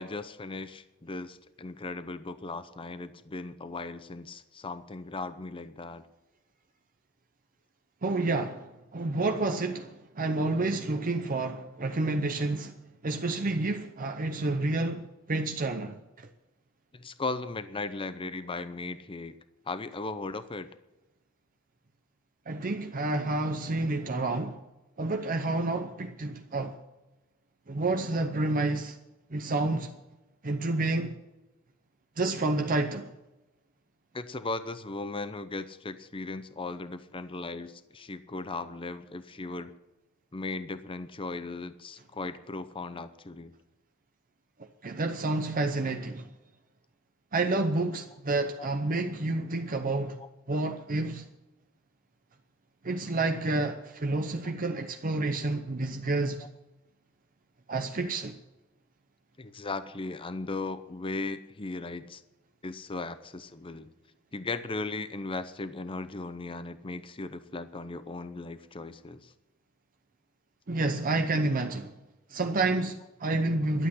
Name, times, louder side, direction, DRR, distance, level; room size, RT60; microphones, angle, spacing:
voice 1, 0.0-6.1 9.5-9.6 16.9-19.3 19.7-20.7 28.1-28.2 34.1-39.7 40.3-43.5 50.2-50.3 56.4-56.5 59.4-62.2 62.6-63.9 64.3-69.3, left 3 dB, 25° left, 0.6 m, -37 dB
voice 2, 8.0-12.7 13.0-16.3 22.5-24.6 25.0-26.8 27.7-29.0 29.3-29.9 30.4-31.2 32.2-33.1 44.8-46.3 47.3-50.2 50.5-51.2 52.8-56.5 57.7-58.4 70.7-71.9 72.3-73.9, right 2 dB, 40° right, 0.8 m, -29 dB
12.0 x 8.2 x 9.7 m
head